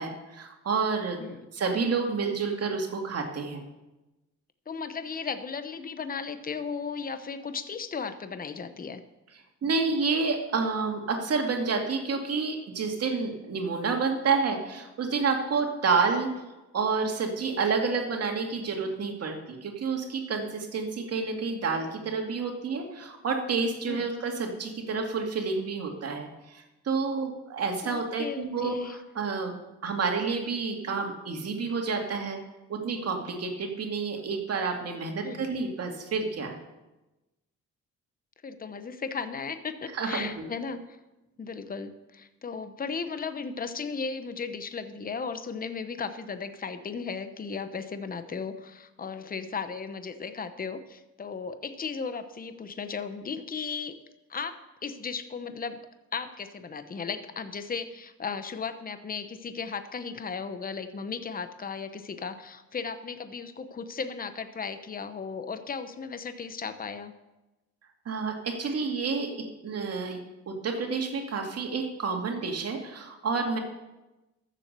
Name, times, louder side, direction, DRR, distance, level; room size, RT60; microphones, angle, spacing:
voice 1, 0.0-1.2 1.5-3.6 9.6-16.3 16.7-29.5 29.8-32.4 32.7-36.5 39.9-40.5 68.1-70.2 70.5-73.6, right 4 dB, 55° right, 3 dB, 2.4 m, -29 dB
voice 2, 4.7-9.0 23.9-24.1 27.8-29.0 35.2-35.5 38.4-40.8 41.4-54.0 54.3-55.8 56.1-67.1, left 5 dB, 30° left, 10 dB, 0.9 m, -36 dB
13.5 x 7.5 x 6.8 m, 1.0 s
cardioid pair, 90°, 30 cm